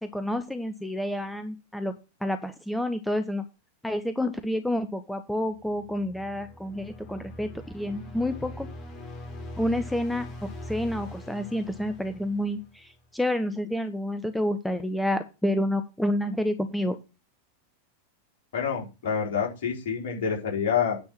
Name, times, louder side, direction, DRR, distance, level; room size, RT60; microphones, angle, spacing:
voice 1, 0.0-1.9 2.2-3.4 3.8-7.5 7.7-8.7 9.6-10.3 10.7-17.0, left 1 dB, 5° left, 9 dB, 0.8 m, -29 dB
sound 1, 5.6-13.0, left 1 dB, 30° left, 2.8 m, -42 dB
voice 2, 18.5-21.0, left 7 dB, 50° left, 0 dB, 4.6 m, -27 dB
9.5 x 4.6 x 7.5 m, 0.29 s
figure-of-eight pair, 90°, 0 cm